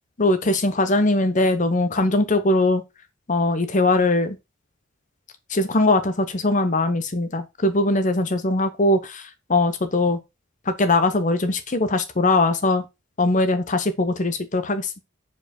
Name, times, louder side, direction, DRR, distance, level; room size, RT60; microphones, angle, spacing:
voice 1, 0.2-2.8 3.3-4.4 5.5-9.2 9.5-10.2 10.7-12.8 13.2-15.0, left 2 dB, 40° left, 0.8 m, -21 dB
4.9 x 4.6 x 4.3 m
head